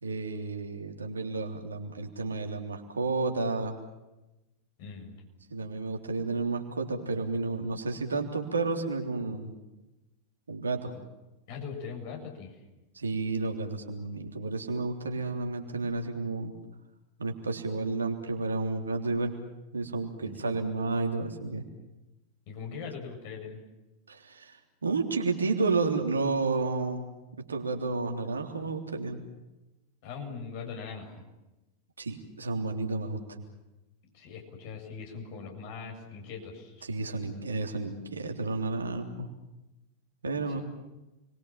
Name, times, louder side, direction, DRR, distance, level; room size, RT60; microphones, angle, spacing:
voice 1, 0.0-3.8 5.5-9.5 10.5-10.9 13.0-16.5 17.2-19.3 19.7-21.6 24.1-27.0 27.5-29.2 32.0-33.4 36.9-39.3 40.2-40.6, right 3 dB, 75° right, 3 dB, 3.4 m, -31 dB
voice 2, 4.8-5.1 11.5-12.6 20.2-20.5 22.5-23.6 30.0-31.2 34.1-36.8 40.5-40.6, left 5 dB, 50° left, 2 dB, 7.3 m, -41 dB
30.0 x 22.5 x 7.4 m, 1.0 s
figure-of-eight pair, 90°, 0 cm